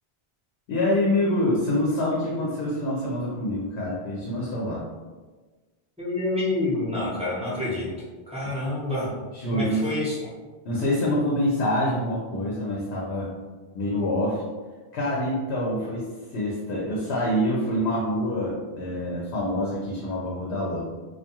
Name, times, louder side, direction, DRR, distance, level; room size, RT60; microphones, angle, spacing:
voice 1, 0.7-4.8 9.3-9.8 10.6-13.3 13.7-14.4 14.9-20.8, left 1 dB, 80° left, -4 dB, 0.9 m, -26 dB
voice 2, 6.0-7.9 8.3-9.1 9.5-10.2, left 2 dB, 5° right, -9 dB, 0.7 m, -27 dB
2.3 x 2.3 x 2.8 m, 1.3 s
omnidirectional pair, 1.1 m